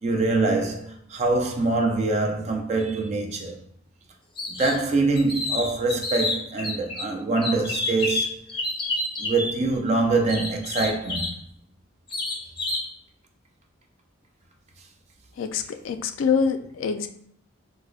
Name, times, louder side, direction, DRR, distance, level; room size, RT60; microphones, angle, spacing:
voice 1, 0.0-3.6 4.5-8.4 9.2-11.3, right 3 dB, 35° right, 0.4 m, -24 dB
sound 1, 4.4-4.8 5.2-7.0 7.4-9.5 10.3-11.4 12.1-12.9, left 2 dB, 25° left, 0.6 m, -29 dB
voice 2, 15.4-17.1, left 6 dB, 70° left, 0.3 m, -25 dB
4.7 x 2.1 x 2.3 m
head